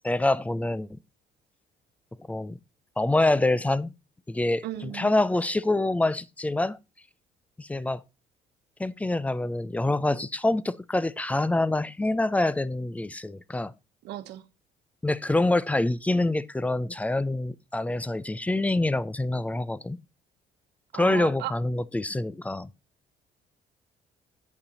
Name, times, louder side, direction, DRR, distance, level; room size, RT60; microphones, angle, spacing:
voice 1, 0.0-0.9 2.3-2.6 3.0-3.9 4.3-6.8 7.6-8.0 8.8-13.7 15.0-20.0 20.9-22.7, left 2 dB, 10° left, 0.3 m, -26 dB
voice 2, 4.6-5.2 14.0-14.4 20.9-21.5, right 13 dB, 80° right, 1.0 m, -35 dB
8.5 x 5.5 x 4.0 m
cardioid pair, 110°, 17 cm